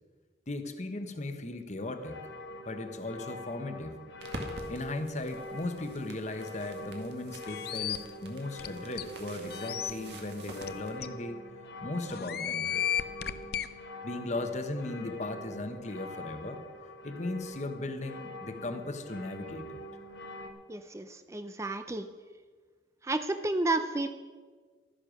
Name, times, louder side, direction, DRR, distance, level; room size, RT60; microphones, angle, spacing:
voice 1, 0.5-2.3 2.7-4.1 4.7-11.4 11.8-13.0 14.0-16.6 17.0-19.8, left 2 dB, 40° left, 8 dB, 1.1 m, -37 dB
sound 1, 1.8-20.5, left 1 dB, 85° left, 1.5 m, -44 dB
sound 2, 4.2-10.9, right 1 dB, 70° right, 2.0 m, -47 dB
sound 3, 7.5-8.0 8.6-8.7 9.0-9.1 9.5-9.9 10.6-10.7 11.0-11.1 12.1-13.7, left 10 dB, 60° left, 0.6 m, -33 dB
voice 2, 20.7-22.1 23.0-24.1, right 2 dB, 15° right, 9 dB, 0.5 m, -31 dB
13.0 x 10.0 x 6.3 m, 1.5 s
head